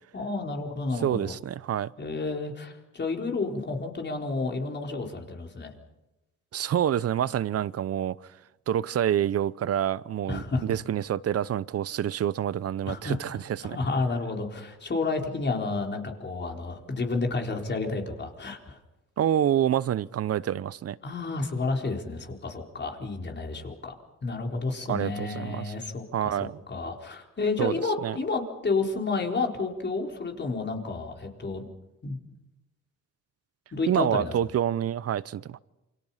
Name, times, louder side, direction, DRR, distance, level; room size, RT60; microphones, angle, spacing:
voice 1, 0.1-1.3 2.0-5.7 10.3-10.7 12.9-13.2 13.6-18.8 21.0-23.9 24.2-31.7 32.0-32.2 33.7-34.3, left 3 dB, 35° left, 4.2 m, -31 dB
voice 2, 1.0-1.9 6.5-8.2 8.7-13.8 19.2-21.0 24.9-25.7 26.1-26.6 27.6-27.7 28.0-28.2 33.9-35.6, right 10 dB, 55° right, 0.8 m, -27 dB
28.5 x 24.5 x 5.7 m
cardioid pair, 90°, 30 cm